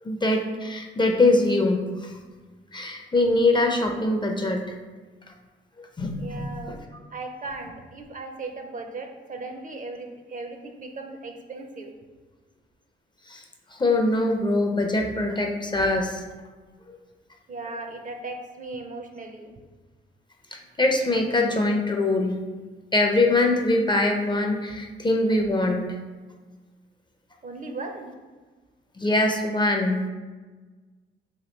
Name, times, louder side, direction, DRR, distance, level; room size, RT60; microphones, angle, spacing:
voice 1, 0.0-2.1 2.7-4.8 5.8-6.8 13.3-13.4 13.7-16.2 16.9-17.0 20.5-22.4 22.9-25.9 29.0-30.0, left 2 dB, 20° left, 3 dB, 0.4 m, -23 dB
voice 2, 6.2-6.7 7.1-11.9 17.5-19.6 27.4-28.1, right 3 dB, 40° right, 4 dB, 0.5 m, -37 dB
3.0 x 2.5 x 3.1 m, 1.3 s
supercardioid pair, 55°, 21 cm